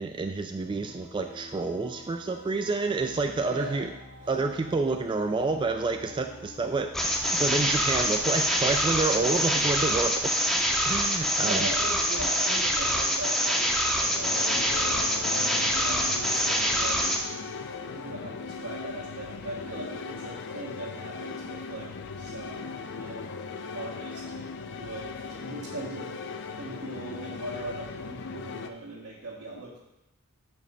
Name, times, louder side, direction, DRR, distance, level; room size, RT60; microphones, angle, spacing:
voice 1, 0.0-3.9 4.3-10.4 10.8-11.7, right 3 dB, 20° right, 5 dB, 0.3 m, -29 dB
sound 1, 0.7-9.7, left 2 dB, 70° left, 1.6 m, -49 dB
voice 2, 3.5-3.9 11.4-14.5 15.3-17.2 17.6-21.9 22.2-23.3 23.7-29.8, right 1 dB, 80° right, -6 dB, 1.6 m, -40 dB
sound 2, 6.9-17.3, equal, ahead, 0.7 m, -25 dB
sound 3, 14.0-28.7, left 4 dB, 55° left, 0.5 m, -38 dB
6.1 x 5.2 x 5.5 m, 0.89 s
head